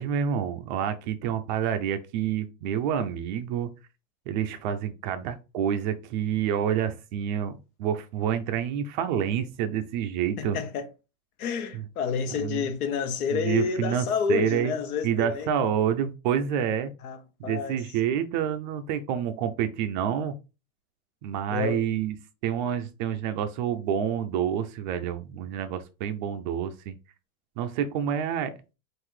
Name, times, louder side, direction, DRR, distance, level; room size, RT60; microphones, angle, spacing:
voice 1, 0.0-3.7 4.3-10.6 11.7-11.8 12.2-12.7 13.3-14.7 15.0-16.9 17.4-20.3 21.2-22.2 22.4-26.9 27.6-28.6, right 9 dB, 35° right, 0.4 m, -28 dB
voice 2, 10.4-10.9 11.4-15.5 17.0-17.2 17.4-17.8 21.5-21.9, left 7 dB, 85° left, 1.2 m, -29 dB
5.7 x 2.5 x 3.1 m
supercardioid pair, 155°, 43 cm